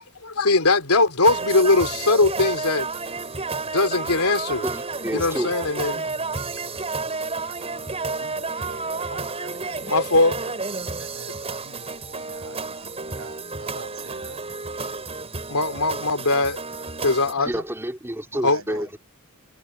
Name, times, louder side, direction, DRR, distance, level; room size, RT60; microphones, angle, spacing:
voice 1, 0.2-2.9 3.6-4.6 5.1-6.0 9.9-10.4 15.5-16.6 17.0-17.5 18.4-18.6, left 3 dB, 90° left, 3.3 m, -20 dB
sound 1, 1.2-17.3, right 3 dB, 30° right, 5.5 m, -31 dB
voice 2, 4.6-5.6 17.5-19.0, right 1 dB, 10° right, 3.4 m, -29 dB
voice 3, 8.2-10.5 10.9-14.6 17.4-17.6 18.3-18.9, right 3 dB, 70° right, 7.7 m, -44 dB
head